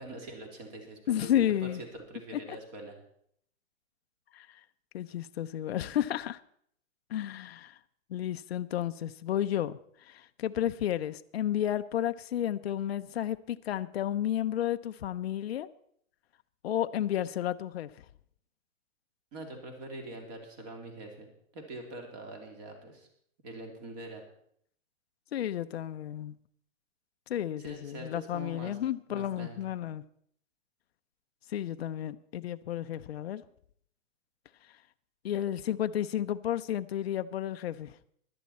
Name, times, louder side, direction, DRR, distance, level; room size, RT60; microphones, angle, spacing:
voice 1, 0.0-3.0 19.3-21.3 21.5-23.1 23.4-24.2 27.6-28.8 29.1-29.6, right 2 dB, 30° right, 3.0 m, -44 dB
voice 2, 1.1-1.8 2.3-2.6 4.3-4.5 4.9-6.4 7.1-7.7 8.1-9.8 10.1-15.7 16.6-17.9 25.3-26.3 27.3-30.0 31.5-33.4 35.2-37.9, left 11 dB, 50° left, 0.6 m, -32 dB
16.5 x 12.0 x 4.3 m
hypercardioid pair, 165°, 40 cm